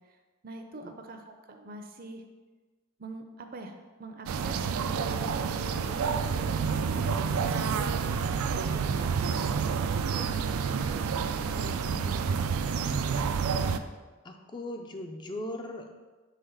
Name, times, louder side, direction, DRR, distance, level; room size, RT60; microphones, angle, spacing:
voice 1, 0.4-2.2 3.0-4.7 5.0-6.3 6.6-11.3 11.5-12.7, right 2 dB, 45° right, 5 dB, 0.5 m, -43 dB
sound 1, 4.3-13.8, right 6 dB, 90° right, 0.4 m, -29 dB
voice 2, 14.2-15.9, left 1 dB, 20° left, 4 dB, 0.4 m, -38 dB
5.8 x 3.4 x 5.5 m, 1.3 s
head